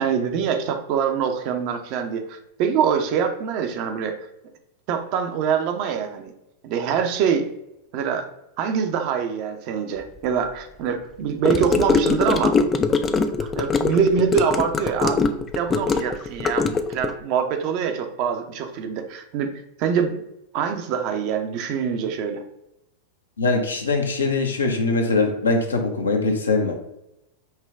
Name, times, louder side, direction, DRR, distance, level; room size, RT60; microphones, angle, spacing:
voice 1, 0.0-4.2 4.9-6.3 6.6-7.5 7.9-8.2 8.6-12.6 13.2-15.3 15.5-19.5 19.8-20.2 20.5-22.4, right 7 dB, 45° right, 6 dB, 0.6 m, -24 dB
Gurgling / Car passing by / Sink (filling or washing), 11.4-17.1, left 4 dB, 20° left, 0.3 m, -22 dB
voice 2, 23.4-26.7, left 3 dB, 70° left, 4 dB, 0.7 m, -22 dB
5.6 x 2.3 x 3.4 m, 0.85 s
figure-of-eight pair, 90°, 0 cm